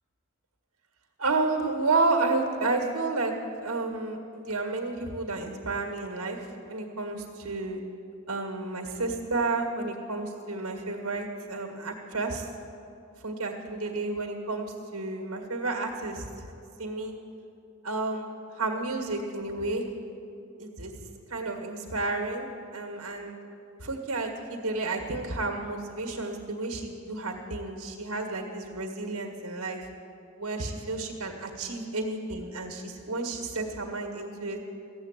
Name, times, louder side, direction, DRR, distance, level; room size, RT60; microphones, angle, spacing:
voice 1, 1.2-3.3 3.6-7.8 8.3-12.5 13.2-16.3 16.8-17.1 17.8-19.9 20.6-20.9 21.3-22.5 22.7-23.4 23.8-29.8 30.4-34.6, right 3 dB, 90° right, 3 dB, 1.8 m, -31 dB
15.0 x 7.9 x 9.1 m, 2.7 s
head